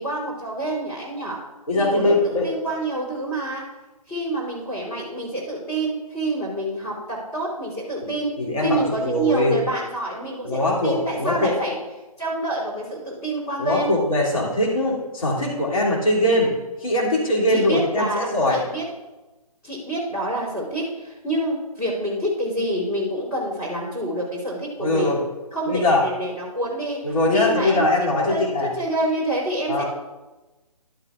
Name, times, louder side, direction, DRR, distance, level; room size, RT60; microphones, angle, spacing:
voice 1, 0.0-1.4 1.7-3.6 4.1-11.8 12.2-13.9 17.5-18.8 19.6-25.2 25.5-28.4 28.7-29.8, right 1 dB, 15° left, -6 dB, 3.1 m, -27 dB
voice 2, 1.7-2.5 8.0-8.1 8.4-9.6 10.4-11.5 13.6-16.6 16.8-18.6 24.8-25.2 25.7-26.0 27.0-28.7 29.7-29.8, left 1 dB, 60° left, -3 dB, 2.6 m, -21 dB
11.5 x 9.1 x 2.4 m, 1.1 s
figure-of-eight pair, 150°, 20 cm